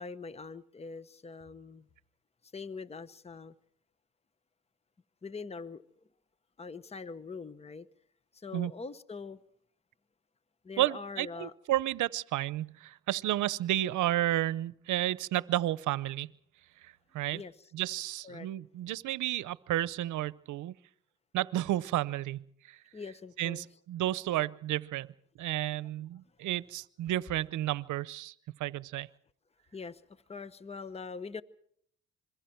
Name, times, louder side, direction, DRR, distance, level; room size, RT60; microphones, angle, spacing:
voice 1, 0.0-1.9 2.5-3.5 5.2-5.8 6.6-7.9 8.3-9.4 10.6-11.5 17.3-17.5 18.2-18.5 22.9-23.7 25.8-25.9 29.7-31.4, left 4 dB, 20° left, 16 dB, 0.9 m, -43 dB
voice 2, 10.8-16.3 16.8-17.4 17.7-20.7 21.3-22.8 23.4-25.1 25.4-28.3 28.6-29.1, right 14 dB, 75° right, 19 dB, 0.7 m, -32 dB
26.5 x 22.5 x 4.5 m, 0.65 s
cardioid pair, 90°, 30 cm